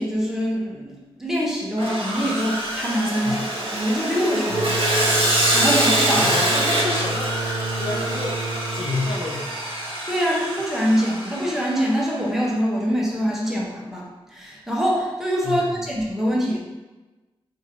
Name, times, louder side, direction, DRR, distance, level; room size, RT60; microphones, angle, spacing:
voice 1, 0.0-3.4 3.7-4.7 5.5-6.3 10.1-14.1 14.3-16.6, equal, 5° right, -4 dB, 0.8 m, -24 dB
Sawing, 1.8-12.0, right 1 dB, 60° right, 0.9 m, -25 dB
sound 1, 4.5-9.9, right 3 dB, 85° right, 0.6 m, -30 dB
voice 2, 6.1-7.4 7.8-8.4 8.7-9.5 15.4-15.9, left 3 dB, 60° left, -1 dB, 0.6 m, -29 dB
2.9 x 2.5 x 3.9 m, 1.2 s
wide cardioid pair, 100°, 10 cm